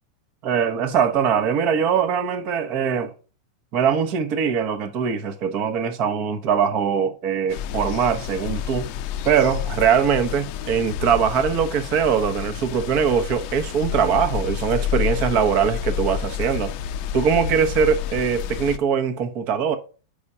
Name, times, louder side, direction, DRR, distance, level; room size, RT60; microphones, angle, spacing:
voice 1, 0.4-3.1 3.7-8.9 9.2-16.7 17.1-19.8, right 7 dB, 45° right, 1.0 m, -22 dB
sound 1, 7.5-18.8, left 9 dB, 50° left, 0.5 m, -29 dB
5.0 x 4.2 x 5.5 m
hypercardioid pair, 115°, 3 cm